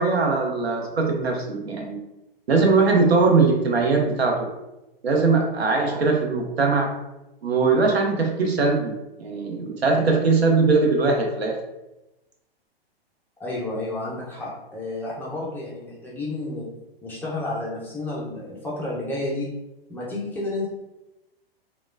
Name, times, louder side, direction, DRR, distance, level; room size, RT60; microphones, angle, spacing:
voice 1, 0.0-2.0 2.5-4.5 5.0-6.9 7.4-11.6, right 4 dB, 90° right, 2 dB, 0.7 m, -21 dB
voice 2, 13.4-16.7 17.0-19.5 19.9-20.7, left 2 dB, 5° left, -6 dB, 0.4 m, -31 dB
3.0 x 2.2 x 2.4 m, 0.96 s
hypercardioid pair, 120°, 30 cm